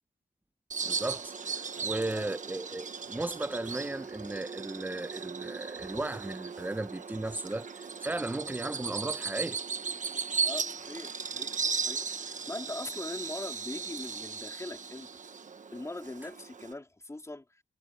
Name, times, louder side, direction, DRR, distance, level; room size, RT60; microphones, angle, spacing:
Bird vocalization bird call bird song, 0.7-16.7, right 5 dB, 45° right, 1.2 m, -37 dB
voice 1, 0.8-1.3 1.8-7.7 8.0-9.6, right 2 dB, 10° right, 0.8 m, -35 dB
voice 2, 1.8-2.3 10.4-11.6 11.8-15.1 15.7-17.6, left 2 dB, 15° left, 3.5 m, -41 dB
wide cardioid pair, 155°, 18 cm